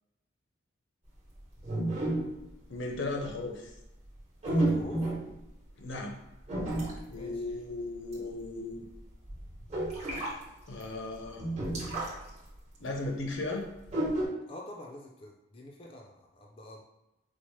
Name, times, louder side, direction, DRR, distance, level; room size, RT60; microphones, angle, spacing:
sound 1, 1.6-2.5 3.0-3.3 4.4-5.4 6.5-7.2 7.9-8.1 8.4-8.5 8.9-10.3 10.8-10.9 11.3-12.3 12.6-12.7 13.9-14.3, right 1 dB, 35° right, 1.0 m, -31 dB
voice 1, 2.7-3.7 5.8-6.2 7.1-8.9 10.7-11.5 12.8-13.7, left 2 dB, 80° left, 2 dB, 0.6 m, -36 dB
voice 2, 4.4-5.0 7.1-7.6 14.5-16.8, left 1 dB, 30° left, 0 dB, 0.4 m, -46 dB
4.3 x 2.0 x 3.0 m, 0.94 s
head